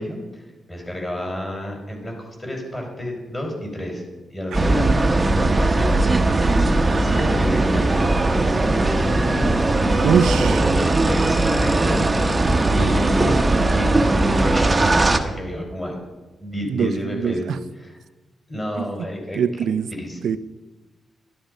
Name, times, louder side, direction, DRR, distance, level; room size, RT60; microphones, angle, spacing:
voice 1, 0.0-10.3 11.0-12.4 12.7-13.4 13.7-16.0 16.4-18.0 18.5-19.4 20.0-20.4, left 1 dB, 20° left, 1 dB, 4.3 m, -30 dB
sound 1, 4.5-15.2, right 2 dB, 20° right, 1.1 m, -19 dB
voice 2, 10.0-10.6 16.7-17.6 18.8-18.9 19.3-19.9 20.2-20.4, right 8 dB, 80° right, 15 dB, 0.5 m, -22 dB
12.0 x 11.5 x 5.2 m, 1.2 s
cardioid pair, 100°, 0 cm